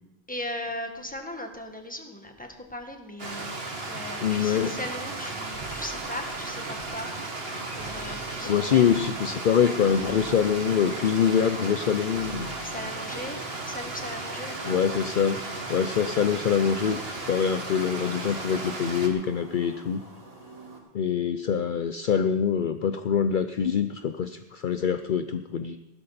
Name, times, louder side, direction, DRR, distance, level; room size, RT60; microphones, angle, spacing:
voice 1, 0.3-3.5 3.8-7.1 7.7-8.9 12.6-14.8, left 1 dB, 10° left, 3 dB, 1.7 m, -38 dB
Stream, 3.2-19.1, right 2 dB, 70° right, 2.1 m, -35 dB
voice 2, 4.2-4.8 8.4-12.5 14.7-15.4 15.7-20.0 20.9-25.8, left 7 dB, 55° left, 9 dB, 0.7 m, -24 dB
sound 1, 4.2-13.3, right 3 dB, 55° right, 1.5 m, -48 dB
sound 2, 7.4-20.8, right 1 dB, 35° right, 3.4 m, -49 dB
15.0 x 13.0 x 4.2 m, 1.0 s
omnidirectional pair, 1.1 m